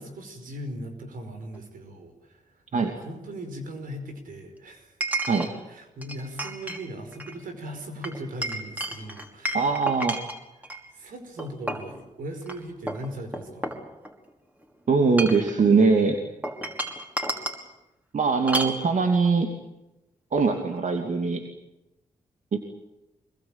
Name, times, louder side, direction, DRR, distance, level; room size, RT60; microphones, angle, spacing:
voice 1, 0.0-4.9 5.7-9.8 10.6-13.8, right 1 dB, 80° right, 6 dB, 5.1 m, -39 dB
Chink clink, 1.5-1.6 5.0-5.5 6.0-6.8 7.1-7.4 8.0-10.8 11.4-11.9 12.4-12.5 12.9-14.3 15.0-15.5 16.4-17.6 18.5-18.8, right 1 dB, 10° right, 5.3 m, -31 dB
voice 2, 9.5-10.2 14.9-16.2 18.1-19.5 20.3-21.4 22.5-22.6, right 4 dB, 60° right, 4 dB, 2.8 m, -22 dB
25.0 x 21.0 x 9.0 m, 0.97 s
supercardioid pair, 45°, 14 cm